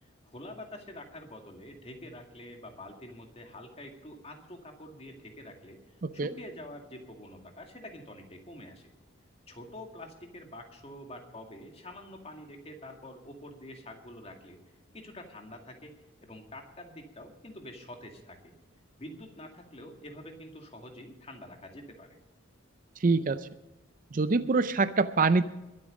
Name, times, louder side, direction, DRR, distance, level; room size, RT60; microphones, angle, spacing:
voice 1, 0.0-8.8 9.5-16.0 16.2-18.5 19.0-22.2, left 1 dB, 30° left, 3 dB, 2.1 m, -46 dB
voice 2, 23.0-23.5 24.1-25.4, right 3 dB, 40° right, 13 dB, 0.5 m, -25 dB
21.5 x 8.6 x 5.3 m, 0.99 s
head